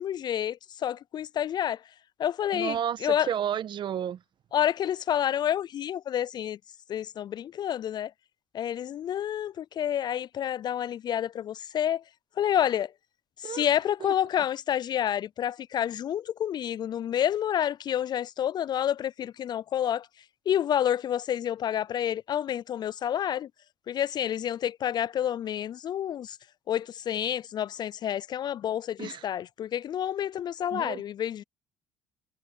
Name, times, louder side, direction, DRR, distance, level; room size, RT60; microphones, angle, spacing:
voice 1, 0.0-1.8 2.2-2.8 3.0-3.3 4.5-6.6 6.9-8.1 8.5-12.0 12.4-12.9 13.4-20.1 20.5-23.5 23.9-26.4 26.7-31.4, left 10 dB, 45° left, 0.3 m, -29 dB
voice 2, 2.5-4.2 13.4-13.7 14.0-14.1 29.0-29.3 30.7-31.0, right 9 dB, 50° right, 1.3 m, -32 dB
supercardioid pair, 75°, 10 cm